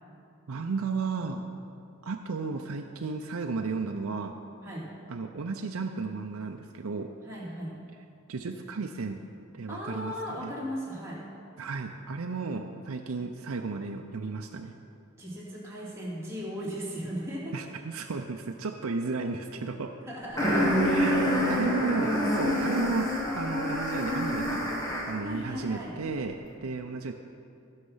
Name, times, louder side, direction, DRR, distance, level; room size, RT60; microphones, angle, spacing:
voice 1, 0.5-1.4 2.0-4.3 5.1-7.1 8.3-9.2 9.5-10.5 11.6-14.7 17.5-19.9 20.8-27.1, right 4 dB, 85° right, 3 dB, 0.6 m, -33 dB
voice 2, 7.2-7.8 9.7-11.2 15.2-17.6 20.0-20.6 21.0-21.7 25.2-25.9, equal, 15° right, -7 dB, 2.6 m, -37 dB
sound 1, 20.4-25.3, equal, 15° left, 1.6 m, -27 dB
14.5 x 6.5 x 5.6 m, 2.6 s
head